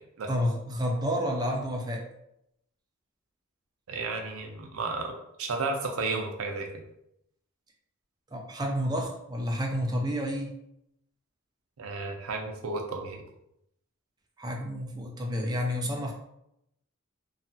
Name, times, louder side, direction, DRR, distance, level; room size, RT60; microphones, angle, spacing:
voice 1, 0.3-2.1 8.3-10.5 14.4-16.1, equal, 20° right, 1 dB, 0.4 m, -30 dB
voice 2, 3.9-6.8 11.8-13.2, right 3 dB, 90° right, 3 dB, 0.5 m, -33 dB
2.8 x 2.3 x 2.6 m, 0.80 s
head